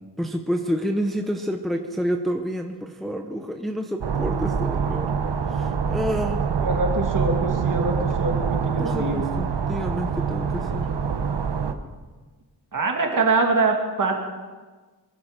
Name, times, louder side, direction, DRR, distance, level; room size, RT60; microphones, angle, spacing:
voice 1, 0.2-5.2 5.5-6.5 8.8-10.9, equal, ahead, 4 dB, 0.8 m, -28 dB
sound 1, 4.0-11.7, right 6 dB, 65° right, 1.2 m, -25 dB
voice 2, 6.6-9.3 12.7-14.2, right 3 dB, 45° right, 2 dB, 2.4 m, -24 dB
24.0 x 12.0 x 5.1 m, 1.3 s
wide cardioid pair, 180°, 44 cm